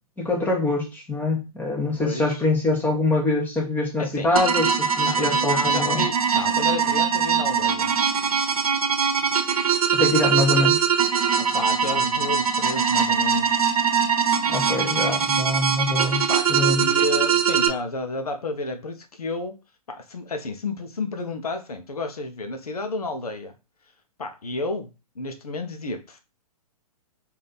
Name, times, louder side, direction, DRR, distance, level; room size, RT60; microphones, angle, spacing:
voice 1, 0.2-6.1 9.9-10.8 14.4-16.9, left 2 dB, 10° left, -1 dB, 1.1 m, -24 dB
voice 2, 2.0-2.4 4.0-4.3 5.0-7.9 11.4-13.7 16.3-19.5 19.9-23.5 24.2-26.2, left 2 dB, 75° left, 6 dB, 0.9 m, -31 dB
sound 1, 4.4-17.7, right 7 dB, 70° right, 0.8 m, -22 dB
3.3 x 2.8 x 4.0 m, 0.29 s
figure-of-eight pair, 120°, 19 cm